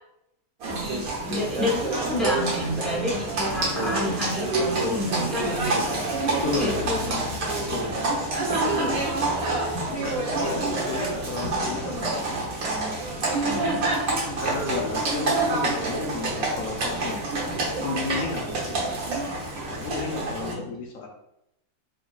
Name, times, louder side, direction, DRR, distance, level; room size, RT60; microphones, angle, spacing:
Livestock farm animals working animals, 0.6-20.5, right 2 dB, 70° right, 1.4 m, -27 dB
voice 1, 0.7-5.8 6.3-7.2 8.6-8.8 13.4-13.8 20.2-20.6, left 1 dB, ahead, -6 dB, 0.7 m, -30 dB
voice 2, 6.3-6.8 7.6-8.2 8.6-9.2 9.9-12.3 14.4-17.2 17.8-18.8 19.5-21.1, left 4 dB, 65° left, 1 dB, 1.0 m, -33 dB
4.4 x 2.8 x 2.3 m, 0.82 s
omnidirectional pair, 1.6 m